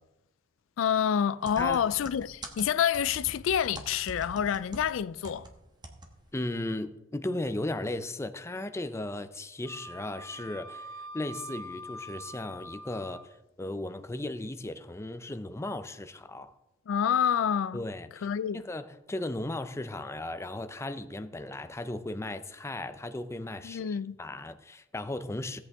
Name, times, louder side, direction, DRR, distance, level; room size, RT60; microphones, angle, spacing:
voice 1, 0.8-5.5 16.9-17.8 18.2-18.6 23.6-24.2, left 8 dB, 70° left, 0.3 m, -28 dB
sound 1, 1.5-5.5 5.8-6.1 6.4-6.5, right 1 dB, 20° right, 1.3 m, -44 dB
voice 2, 6.3-16.5 17.7-18.3 18.5-25.6, left 1 dB, 15° left, 0.5 m, -36 dB
Wind instrument woodwind instrument, 9.7-13.3, equal, 85° right, 1.0 m, -44 dB
16.5 x 8.3 x 3.5 m
head